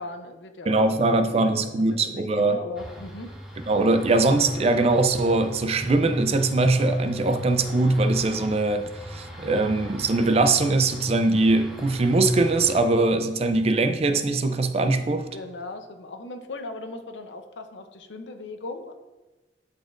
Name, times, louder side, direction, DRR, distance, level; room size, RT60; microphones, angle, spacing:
voice 1, 0.0-1.6 1.9-3.3 15.3-18.9, left 2 dB, 90° left, 7 dB, 0.7 m, -38 dB
voice 2, 0.7-2.6 3.7-15.3, right 2 dB, 35° right, 9 dB, 0.4 m, -22 dB
sound 1, 2.8-12.9, equal, 5° right, 0.9 m, -41 dB
10.5 x 4.3 x 2.5 m, 1.1 s
head